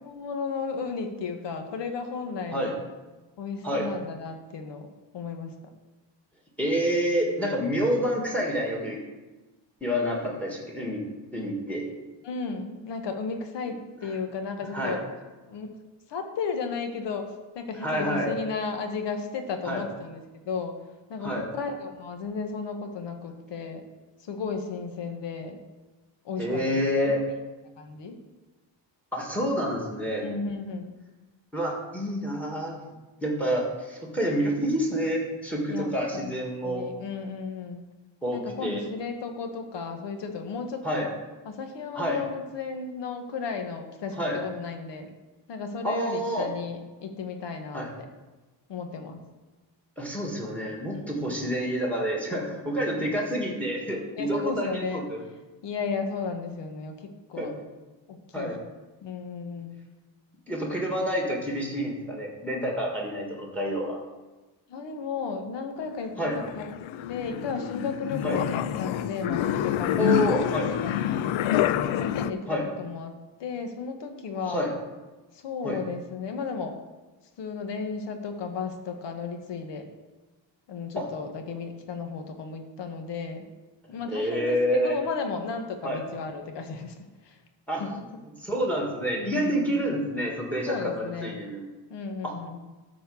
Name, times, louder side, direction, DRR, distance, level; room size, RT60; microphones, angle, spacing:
voice 1, 0.0-2.8 3.4-4.9 5.1-5.5 12.2-15.0 15.5-15.7 16.1-20.8 21.1-23.8 24.2-25.6 26.2-27.1 27.8-28.1 30.2-30.9 35.7-37.8 38.3-41.1 41.4-45.1 45.5-47.9 48.7-49.2 50.9-51.4 52.9-53.1 54.2-55.0 55.6-57.6 58.1-58.6 59.0-59.8 64.7-66.7 67.1-70.1 70.4-71.7 72.0-73.1 73.4-74.6 75.3-76.8 77.4-79.9 80.7-83.5 83.9-87.4 87.8-88.0 89.2-89.8 90.7-91.4 91.9-92.6, left 5 dB, 65° left, 5 dB, 1.5 m, -34 dB
voice 2, 6.6-9.0 9.8-11.0 11.3-11.9 14.7-15.0 17.8-18.3 19.6-19.8 21.2-21.5 26.4-27.2 29.1-30.3 31.5-32.8 33.2-36.9 38.2-38.8 40.8-41.1 41.9-42.2 44.2-44.4 45.8-46.5 47.7-47.9 50.0-55.2 57.4-57.5 58.3-58.6 60.5-64.0 66.2-66.4 68.2-68.4 70.0-70.7 72.5-72.7 74.5-74.7 75.6-75.8 80.9-81.1 84.1-84.9 85.8-86.0 87.7-87.8 88.4-91.7 92.2-92.3, equal, 5° left, 0 dB, 1.8 m, -28 dB
sound 1, 65.8-72.3, left 11 dB, 80° left, 0.6 m, -27 dB
13.0 x 4.4 x 7.1 m, 1.2 s
cardioid pair, 175°, 47 cm